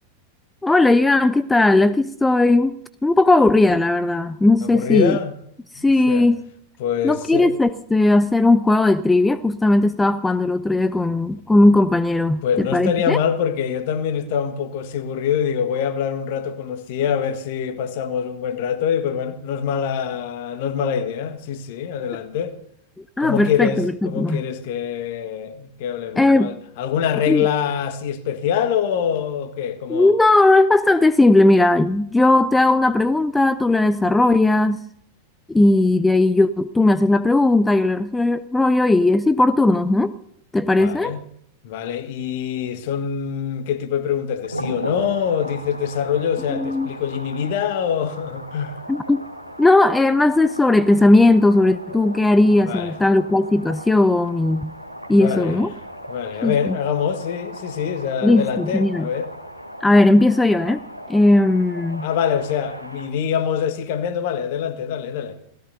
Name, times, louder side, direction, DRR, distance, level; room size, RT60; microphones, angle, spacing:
voice 1, 0.6-5.2 5.8-6.4 7.0-13.2 23.2-24.4 26.2-26.5 27.3-27.4 29.9-34.8 35.5-40.1 40.5-41.2 46.5-46.9 48.9-49.2 49.6-54.7 55.1-55.7 56.4-56.8 58.2-59.1 59.8-60.8 61.1-62.1, left 2 dB, 10° left, 0.5 m, -17 dB
voice 2, 4.6-5.3 6.1-6.3 6.8-7.5 12.4-22.6 23.2-30.1 40.8-41.2 41.6-48.8 52.6-53.0 55.1-55.6 56.1-59.3 62.0-65.4, left 8 dB, 50° left, 1.5 m, -24 dB
sound 1, 44.4-63.1, equal, 90° left, 1.5 m, -37 dB
28.5 x 17.0 x 2.7 m
figure-of-eight pair, 90°, 0 cm